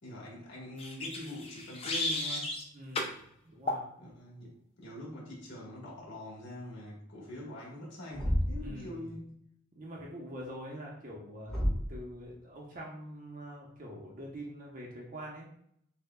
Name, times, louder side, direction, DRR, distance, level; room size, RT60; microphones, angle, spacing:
voice 1, 0.0-2.5 4.0-9.4, left 1 dB, 60° left, -4 dB, 1.4 m, -44 dB
sound 1, 0.8-2.6 2.9-3.2 3.7-3.9, left 2 dB, 30° left, 0.5 m, -34 dB
voice 2, 2.7-3.1 3.4-3.8 8.6-9.1 9.8-11.5 11.9-15.5, equal, 40° right, -3 dB, 0.7 m, -44 dB
Thump thud, 8.1-8.8 11.5-12.0, equal, 5° left, 1.1 m, -30 dB
6.5 x 2.2 x 2.2 m, 0.69 s
head